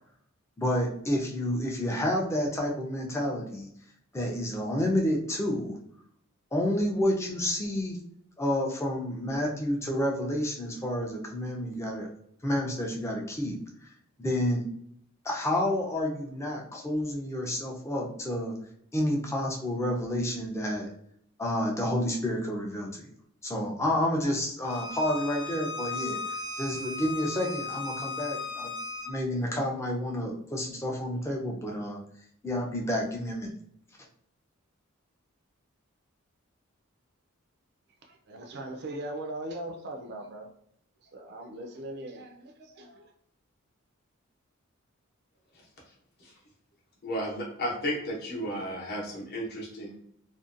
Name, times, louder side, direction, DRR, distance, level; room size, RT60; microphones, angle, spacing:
voice 1, 0.6-3.7 4.1-5.8 6.5-8.0 8.4-12.1 12.4-13.9 14.2-14.7 15.2-18.5 18.9-20.9 21.4-23.1 23.4-28.7 29.1-32.0 32.4-33.5, left 1 dB, 15° left, -1 dB, 0.4 m, -29 dB
Bowed string instrument, 24.6-29.1, left 3 dB, 80° left, 0.6 m, -36 dB
voice 2, 38.0-40.5 41.1-43.1, right 1 dB, 50° right, 3 dB, 0.4 m, -40 dB
voice 3, 47.0-49.9, equal, 50° left, -3 dB, 0.8 m, -33 dB
2.6 x 2.1 x 2.4 m, 0.69 s
head